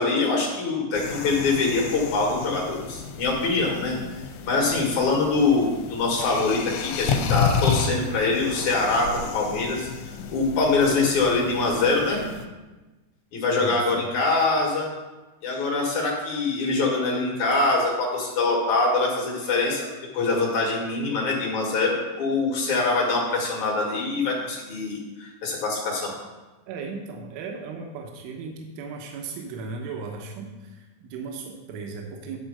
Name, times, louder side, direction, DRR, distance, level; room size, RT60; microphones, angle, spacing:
voice 1, 0.0-4.0 4.5-9.9 10.3-12.2 13.3-14.9 15.4-19.9 20.1-26.1, left 3 dB, 55° left, -2 dB, 2.2 m, -24 dB
sound 1, 0.9-12.5, left 6 dB, 85° left, 2.9 m, -31 dB
voice 2, 13.6-14.1 26.7-32.4, right 4 dB, 80° right, 1 dB, 3.4 m, -36 dB
11.0 x 4.4 x 6.5 m, 1.2 s
omnidirectional pair, 5.6 m